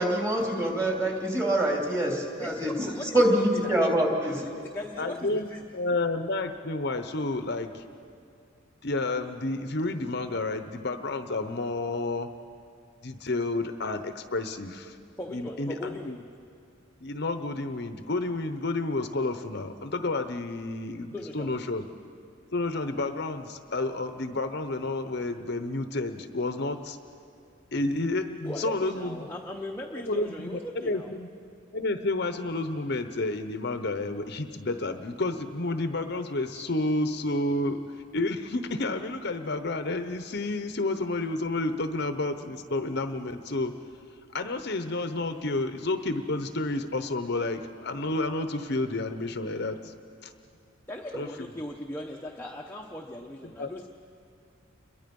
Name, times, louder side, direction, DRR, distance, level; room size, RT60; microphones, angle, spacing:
voice 1, 0.0-4.4, right 1 dB, 15° right, 0 dB, 3.0 m, -25 dB
voice 2, 2.4-3.8 4.4-5.6 15.2-16.2 21.1-21.5 28.4-31.1 50.9-53.9, left 1 dB, 10° left, -1 dB, 0.9 m, -38 dB
voice 3, 5.0-7.8 8.8-12.3 13.0-15.0 15.3-16.2 17.0-21.8 22.5-27.0 27.7-29.3 30.1-31.3 31.7-37.8 38.1-43.7 44.3-49.9 50.2-50.3 51.1-51.3 53.4-53.7, left 2 dB, 55° left, 9 dB, 0.9 m, -30 dB
29.0 x 22.5 x 5.4 m, 2.4 s
head